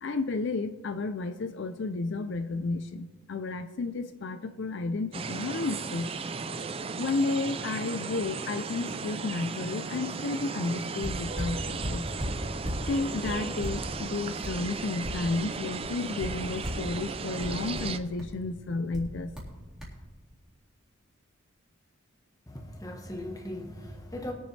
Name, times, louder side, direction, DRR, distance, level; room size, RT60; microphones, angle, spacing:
voice 1, 0.0-6.1 7.0-12.1 12.9-19.3, left 3 dB, 60° left, 8 dB, 0.4 m, -32 dB
sound 1, 5.1-18.0, right 4 dB, 25° right, 0.4 m, -36 dB
sound 2, 11.0-12.9 13.2-15.5 15.8-16.9 17.4-18.4 18.9-19.5 19.8-20.0, equal, ahead, 2.2 m, -36 dB
voice 2, 22.5-24.3, left 1 dB, 15° left, 3 dB, 1.2 m, -38 dB
20.5 x 7.1 x 3.3 m, 1.4 s
head